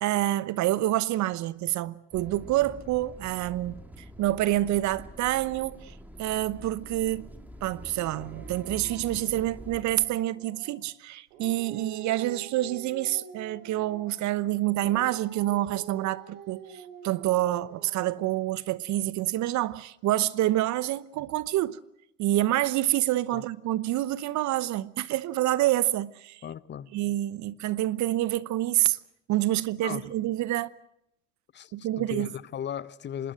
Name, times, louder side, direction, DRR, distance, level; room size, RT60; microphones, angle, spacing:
voice 1, 0.0-5.9 6.2-7.3 7.6-21.8 22.2-26.4 26.9-29.0 29.3-30.7 31.7-32.3, right 15 dB, 50° right, 0.9 m, -27 dB
sound 1, 2.1-10.2, equal, 5° right, 3.0 m, -46 dB
Dog, 8.0-10.8 11.3-14.4 14.8-18.3, right 7 dB, 70° right, 4.3 m, -47 dB
voice 2, 26.4-26.9 29.8-30.1 31.5-33.3, left 9 dB, 30° left, 0.9 m, -37 dB
25.5 x 20.0 x 7.8 m
hypercardioid pair, 80°, 37 cm